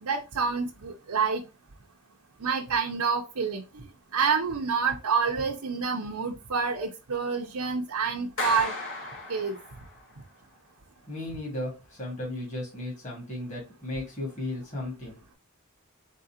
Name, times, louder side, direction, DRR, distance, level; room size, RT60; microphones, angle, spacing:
voice 1, 0.0-1.4 2.4-3.9 4.1-8.7 9.3-9.6, right 5 dB, 90° right, 0.7 m, -28 dB
Clapping, 8.4-10.0, left 2 dB, 65° left, 1.4 m, -35 dB
voice 2, 11.1-15.2, left 1 dB, 35° left, 1.9 m, -35 dB
4.1 x 3.8 x 2.8 m
head